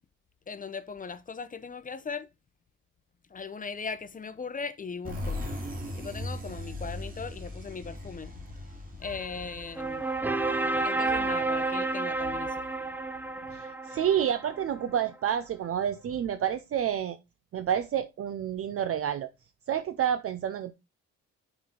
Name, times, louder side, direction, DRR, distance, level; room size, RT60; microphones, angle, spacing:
voice 1, 0.5-2.3 3.3-5.4 6.0-10.1 10.8-12.9 13.5-13.6, left 5 dB, 25° left, 0.7 m, -39 dB
sound 1, 5.0-10.6, left 1 dB, 30° right, 2.2 m, -38 dB
sound 2, 9.0-15.0, right 3 dB, 5° right, 0.6 m, -31 dB
voice 2, 13.5-17.2 17.5-19.3 19.7-20.7, right 9 dB, 50° right, 0.6 m, -29 dB
6.0 x 3.9 x 4.9 m
cardioid pair, 90°, 30 cm